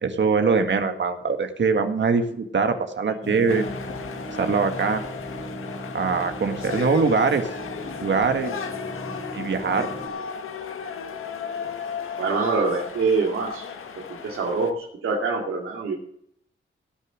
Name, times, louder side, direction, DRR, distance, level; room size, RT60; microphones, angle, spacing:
voice 1, 0.0-3.7 4.4-5.0 5.9-7.5 8.0-8.5 9.1-9.9, right 5 dB, 60° right, 6 dB, 1.8 m, -23 dB
sound 1, 3.2-10.1, right 1 dB, 35° left, 3.5 m, -37 dB
sound 2, 3.5-14.7, left 6 dB, 80° left, 1.6 m, -35 dB
voice 2, 12.2-13.6 14.1-15.9, right 4 dB, 85° right, -2 dB, 2.8 m, -25 dB
18.0 x 6.9 x 6.3 m, 0.67 s
cardioid pair, 65°, 21 cm